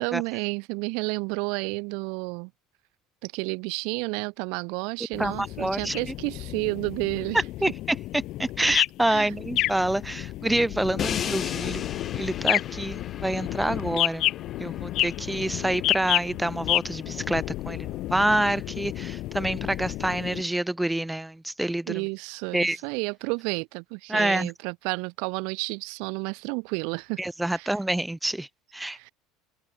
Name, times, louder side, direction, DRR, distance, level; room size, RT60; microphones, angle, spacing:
voice 1, 0.0-2.5 3.2-7.4 8.6-8.7 9.1-9.3 21.9-27.2 27.5-27.7 28.9-29.1, right 34 dB, 70° right, 1.8 m, -31 dB
sound 1, 5.1-20.4, left 16 dB, 50° left, 0.8 m, -31 dB
voice 2, 5.2-5.9 7.3-14.3 14.6-22.0 22.5-22.8 24.1-24.5 27.2-29.1, right 1 dB, 5° right, 0.8 m, -27 dB
Crash cymbal, 11.0-17.0, left 9 dB, 30° left, 4.4 m, -37 dB
cardioid pair, 140°, 0 cm